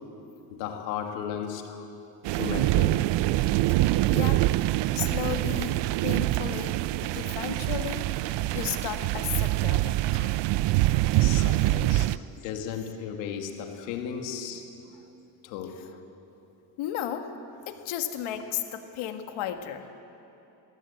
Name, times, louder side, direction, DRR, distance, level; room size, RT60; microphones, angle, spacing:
voice 1, 0.5-1.6 2.3-3.0 11.1-12.1 12.4-14.7 15.4-15.8, left 8 dB, 90° left, 4 dB, 2.2 m, -35 dB
sound 1, 2.3-12.2, right 17 dB, 60° right, 0.6 m, -25 dB
voice 2, 4.1-4.4 4.9-5.7 6.0-10.4 11.2-11.6 12.0-12.2 16.8-17.3 17.7-19.9, left 10 dB, 70° left, 6 dB, 1.9 m, -34 dB
22.5 x 15.5 x 8.3 m, 3.0 s
supercardioid pair, 80°, 49 cm